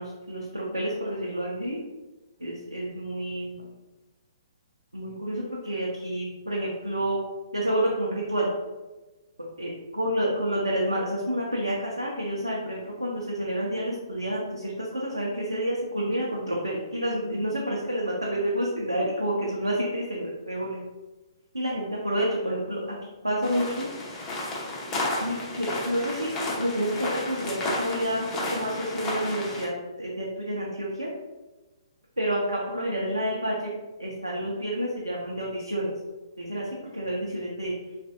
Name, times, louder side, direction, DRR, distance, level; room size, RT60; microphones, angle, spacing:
voice 1, 0.0-1.8 2.4-3.7 4.9-7.2 7.5-8.5 9.6-20.8 21.5-22.8 23.2-23.9 25.2-29.7 30.0-31.1 32.2-33.7 34.0-35.9 36.4-37.7, right 1 dB, 90° right, -4 dB, 0.5 m, -29 dB
sound 1, 23.4-29.6, left 2 dB, 20° left, 0.6 m, -32 dB
3.1 x 2.5 x 2.4 m, 1.1 s
figure-of-eight pair, 125°, 3 cm